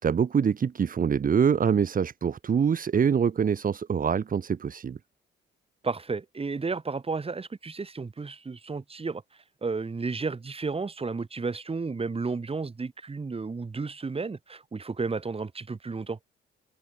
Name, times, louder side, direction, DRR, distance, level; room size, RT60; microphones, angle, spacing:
voice 1, 0.0-5.0, right 7 dB, 45° right, 2.3 m, -25 dB
voice 2, 5.8-16.2, right 4 dB, 30° right, 6.6 m, -32 dB
cardioid pair, 90°, 20 cm